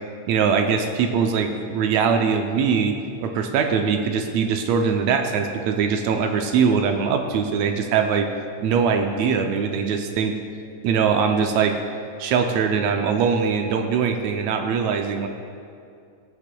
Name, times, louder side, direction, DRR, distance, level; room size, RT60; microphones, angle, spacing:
voice 1, 0.3-3.0 3.2-8.3 8.6-10.3 10.8-11.8 12.2-15.3, right 6 dB, 75° right, 4 dB, 1.7 m, -22 dB
16.5 x 8.8 x 2.3 m, 2.4 s
omnidirectional pair, 3.4 m